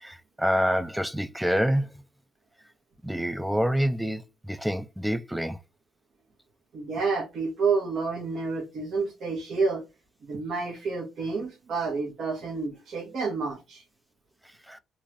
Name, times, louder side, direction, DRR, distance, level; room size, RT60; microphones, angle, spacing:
voice 1, 0.0-1.9 3.0-5.6 14.7-14.8, equal, 5° right, 0.4 m, -27 dB
voice 2, 6.7-9.8 10.2-13.8, right 4 dB, 70° right, 1.6 m, -29 dB
3.9 x 3.1 x 2.3 m
cardioid pair, 90°, 0 cm